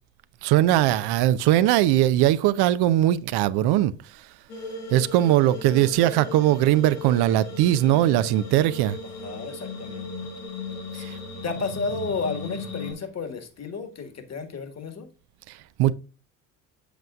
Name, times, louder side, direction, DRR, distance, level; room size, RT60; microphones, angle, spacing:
voice 1, 0.4-3.9 4.9-9.0 11.0-11.2 15.8-15.9, right 13 dB, 70° right, 0.7 m, -20 dB
sound 1, 4.5-12.9, left 2 dB, 90° left, 4.0 m, -37 dB
voice 2, 9.2-10.1 10.9-11.1 11.4-15.1, left 4 dB, 40° left, 1.7 m, -32 dB
8.2 x 7.6 x 2.4 m
hypercardioid pair, 65°, 41 cm